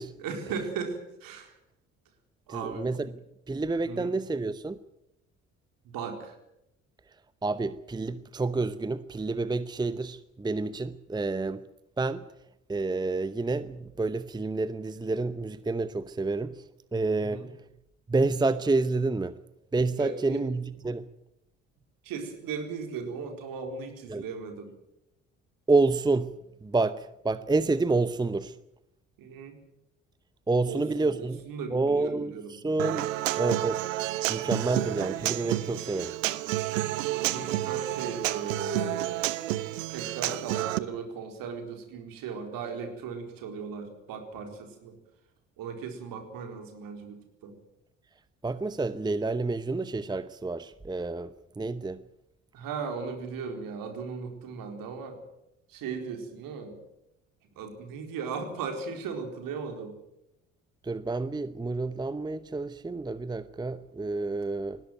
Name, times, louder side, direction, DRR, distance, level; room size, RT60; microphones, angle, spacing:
voice 1, 0.2-1.5 2.5-3.1 3.9-4.1 5.8-6.4 17.2-17.5 20.0-20.4 22.0-24.7 29.2-29.6 30.7-32.6 36.9-39.2 39.9-45.0 45.6-47.5 52.5-55.2 55.7-56.8 57.4-60.0, right 5 dB, 60° right, 4.3 m, -37 dB
voice 2, 2.5-3.1 3.5-4.8 7.4-11.6 12.0-12.2 12.7-16.6 16.9-17.4 18.1-19.3 19.7-21.1 24.1-24.2 25.7-26.3 26.6-28.6 30.5-31.4 31.7-33.1 33.4-33.8 34.3-36.1 36.6-36.8 48.4-52.0 60.8-64.8, right 3 dB, 10° right, 0.8 m, -29 dB
Human voice / Acoustic guitar, 32.8-40.8, right 15 dB, 75° right, 0.9 m, -30 dB
20.0 x 16.5 x 9.4 m
figure-of-eight pair, 50°, 38 cm